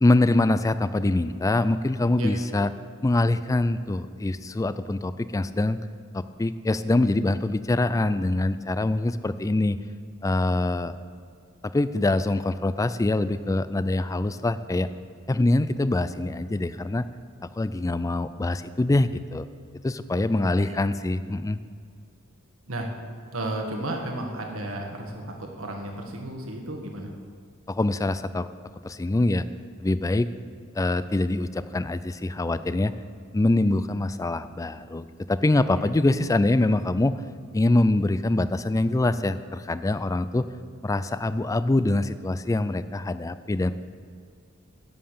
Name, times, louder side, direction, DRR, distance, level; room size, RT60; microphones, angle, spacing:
voice 1, 0.0-2.7 3.0-5.8 6.1-9.8 10.2-10.9 11.6-14.9 15.3-17.0 17.6-19.5 19.8-21.6 27.7-28.5 28.8-29.5 29.8-30.3 30.7-32.9 33.3-37.1 37.5-40.5 40.8-43.7, left 2 dB, 15° left, 14 dB, 0.3 m, -24 dB
voice 2, 20.2-20.6 22.7-22.9 23.3-27.1 35.7-35.9, right 1 dB, 75° right, 2 dB, 1.8 m, -33 dB
11.0 x 7.6 x 6.7 m, 2.1 s
head